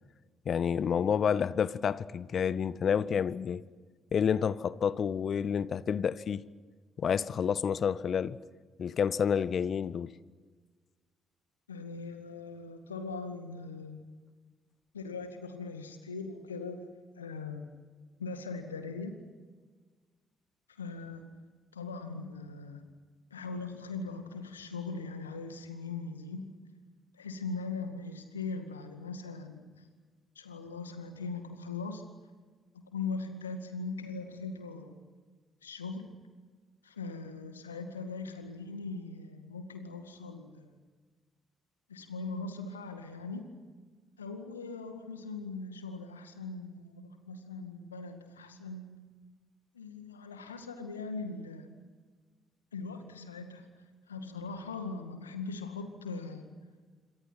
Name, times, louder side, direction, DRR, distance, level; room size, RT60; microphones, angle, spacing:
voice 1, 0.4-3.6 4.1-6.4 7.0-8.4 8.8-10.2, left 7 dB, 50° left, 0.8 m, -29 dB
voice 2, 11.7-14.0 14.9-16.8 17.2-17.6 18.2-19.2 20.7-21.3 21.7-22.8 23.3-26.5 27.1-29.9 30.4-32.0 32.7-34.9 35.6-36.1 36.8-40.7 41.9-43.6 44.2-49.1 49.7-51.7 52.7-56.5, left 4 dB, 85° left, 2.0 m, -40 dB
27.5 x 25.0 x 6.0 m
figure-of-eight pair, 40°, 0 cm